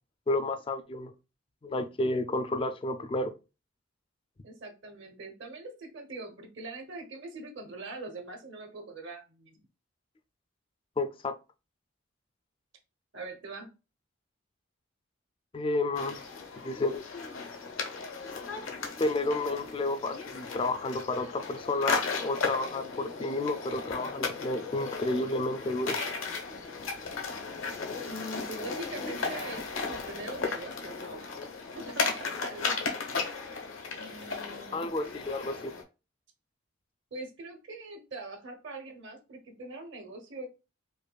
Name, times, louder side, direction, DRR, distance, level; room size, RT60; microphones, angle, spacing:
voice 1, 0.3-1.1 1.6-3.3 11.0-11.4 15.5-16.2 16.6-17.0 19.0-26.0 34.7-35.7, left 2 dB, 25° left, 0.3 m, -31 dB
voice 2, 4.4-9.6 13.1-13.7 28.0-31.3 31.7-33.1 33.9-34.9 37.1-40.5, right 2 dB, 65° right, 0.9 m, -42 dB
sound 1, 16.0-35.8, left 4 dB, 90° left, 0.9 m, -35 dB
5.0 x 2.2 x 2.3 m
head